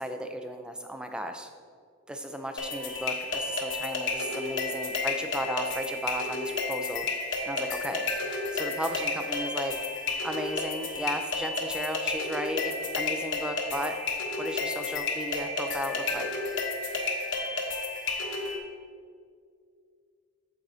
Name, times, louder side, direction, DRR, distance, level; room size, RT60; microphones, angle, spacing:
voice 1, 0.0-1.5 2.1-9.8 10.2-13.9 14.4-16.3, equal, 5° right, 6 dB, 0.4 m, -35 dB
sound 1, 2.6-18.6, left 3 dB, 55° left, 1.0 m, -32 dB
8.9 x 7.4 x 2.7 m, 2.1 s
head